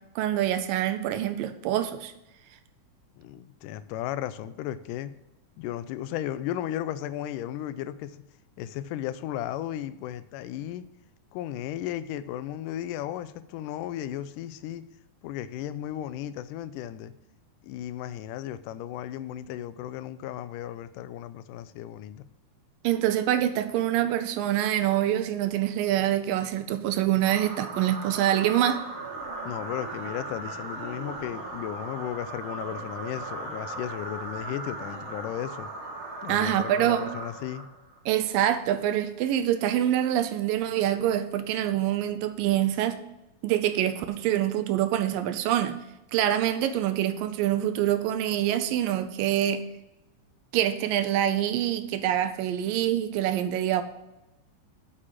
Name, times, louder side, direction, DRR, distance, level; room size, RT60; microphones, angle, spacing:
voice 1, 0.2-2.1 22.8-28.8 36.3-37.0 38.1-43.0 43.4-45.8 46.1-49.6 50.5-53.8, right 11 dB, 80° right, 10 dB, 2.2 m, -25 dB
voice 2, 3.2-5.1 5.6-8.2 8.6-10.8 11.3-14.8 15.2-17.1 17.6-22.3 29.4-35.7 36.2-37.7, left 12 dB, 80° left, 13 dB, 1.9 m, -35 dB
sound 1, 27.2-38.0, right 3 dB, 45° right, 2.2 m, -38 dB
7.4 x 6.5 x 7.4 m, 0.94 s
omnidirectional pair, 4.2 m